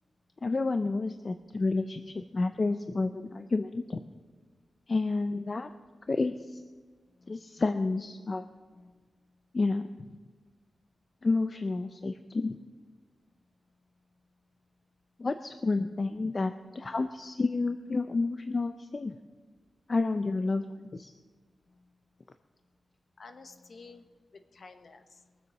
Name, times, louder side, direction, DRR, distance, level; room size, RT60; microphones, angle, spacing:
voice 1, 0.4-4.0 4.9-5.7 6.1-6.6 7.3-8.5 9.5-9.9 11.2-12.6 15.2-19.2 19.9-21.1, left 3 dB, 30° left, 8 dB, 0.5 m, -30 dB
voice 2, 7.1-7.4 8.7-9.2 21.7-21.9 23.2-25.4, left 4 dB, 50° left, 8 dB, 1.1 m, -53 dB
22.0 x 7.7 x 6.5 m, 1.4 s
wide cardioid pair, 175°, 0 cm